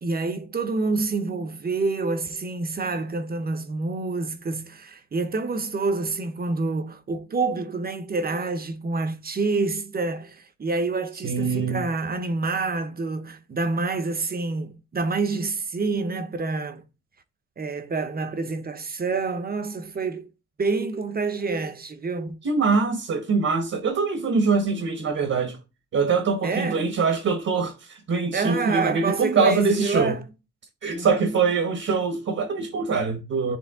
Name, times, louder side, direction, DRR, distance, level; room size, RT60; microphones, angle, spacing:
voice 1, 0.0-16.8 17.6-20.3 20.6-22.4 26.4-26.8 28.3-30.2 30.9-31.4, right 3 dB, 30° right, 0.8 m, -27 dB
voice 2, 11.2-11.8 22.4-25.6 25.9-30.2 30.8-33.6, right 4 dB, 50° right, 1.2 m, -23 dB
10.0 x 3.5 x 3.6 m
wide cardioid pair, 130°, 31 cm